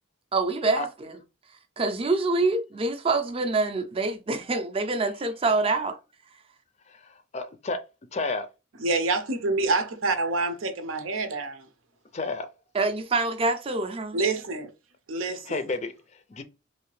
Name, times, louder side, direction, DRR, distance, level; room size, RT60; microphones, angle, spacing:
voice 1, 0.3-1.1 1.8-6.0 12.7-14.2, right 3 dB, 30° right, 0.5 m, -26 dB
voice 2, 6.9-7.8 8.1-8.5 12.1-12.5 15.5-16.4, left 3 dB, 35° left, 0.4 m, -31 dB
voice 3, 8.8-11.6 14.1-14.6 15.1-15.6, right 3 dB, 90° right, 0.7 m, -27 dB
3.2 x 2.7 x 3.1 m
head